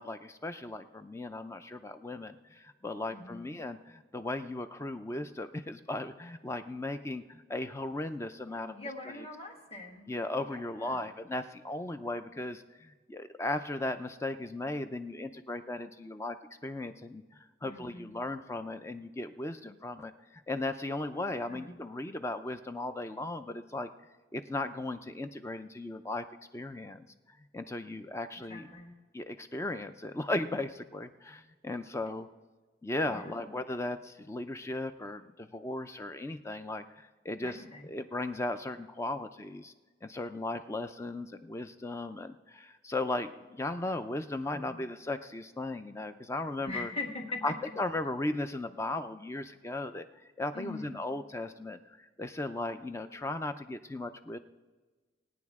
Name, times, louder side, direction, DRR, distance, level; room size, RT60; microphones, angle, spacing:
voice 1, 0.0-8.9 9.2-9.3 10.1-16.4 16.6-23.9 24.3-26.3 26.5-28.7 29.1-32.3 32.8-39.7 40.0-46.9 47.4-50.1 50.4-54.4, left 2 dB, 15° left, 9 dB, 0.4 m, -37 dB
voice 2, 3.1-3.6 8.5-10.1 10.5-11.1 17.6-18.1 21.1-21.8 28.4-28.9 33.1-33.5 37.4-37.9 44.5-44.8 46.7-47.6 50.5-51.0, left 3 dB, 35° left, 2 dB, 1.6 m, -42 dB
19.0 x 9.2 x 3.6 m, 1.3 s
head